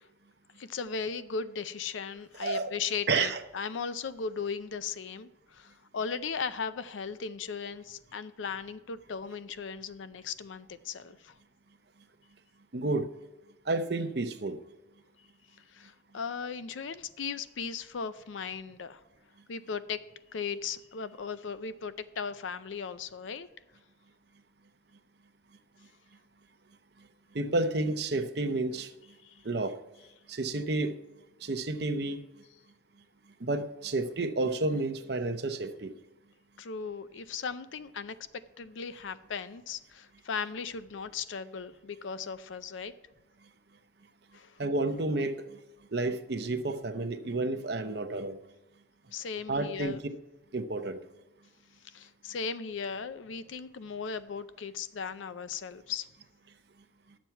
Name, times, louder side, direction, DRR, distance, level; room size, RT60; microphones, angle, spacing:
voice 1, 0.6-11.3 15.7-19.0 19.5-20.0 20.3-23.5 29.2-29.4 36.6-38.2 38.6-42.9 44.3-44.6 49.1-50.0 51.8-56.1, left 5 dB, 90° left, 14 dB, 0.5 m, -37 dB
voice 2, 2.4-2.7 3.1-3.4 12.7-13.1 13.7-14.6 27.3-28.9 29.4-29.8 30.3-30.9 31.4-32.2 33.4-35.9 44.6-45.6 45.9-48.4 49.5-50.0 50.5-51.0, right 2 dB, 60° right, 8 dB, 0.7 m, -30 dB
11.5 x 7.3 x 4.6 m, 1.0 s
head